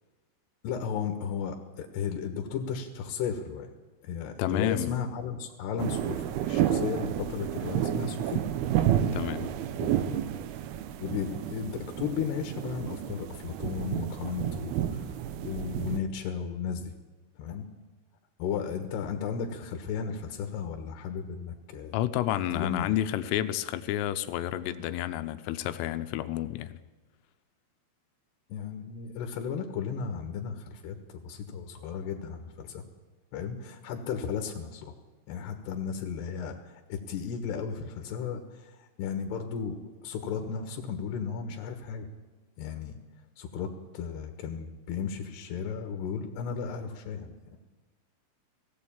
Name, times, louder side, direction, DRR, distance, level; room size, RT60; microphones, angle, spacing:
voice 1, 0.6-3.7 4.0-8.4 9.8-10.2 11.0-15.1 15.4-16.9 17.4-17.7 18.4-22.0 22.5-22.9 28.5-32.8 33.3-34.9 35.3-42.1 42.6-43.0 43.4-47.6, left 6 dB, 65° left, 5 dB, 3.0 m, -35 dB
voice 2, 4.4-5.0 9.1-9.5 21.9-26.7, left 12 dB, 85° left, 11 dB, 3.4 m, -30 dB
sound 1, 5.8-16.0, right 10 dB, 85° right, 2.2 m, -31 dB
19.5 x 16.5 x 8.8 m, 1.3 s
omnidirectional pair, 5.9 m